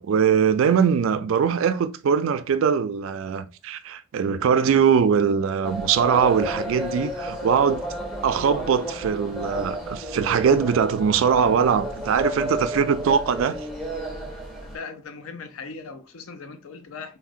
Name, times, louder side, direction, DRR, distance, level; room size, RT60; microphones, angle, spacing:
voice 1, 0.0-7.8 8.2-13.6, right 7 dB, 75° right, 0.3 m, -21 dB
sound 1, 5.6-14.8, equal, ahead, 0.5 m, -32 dB
voice 2, 14.6-17.2, left 4 dB, 85° left, 0.5 m, -39 dB
3.5 x 2.0 x 2.4 m
head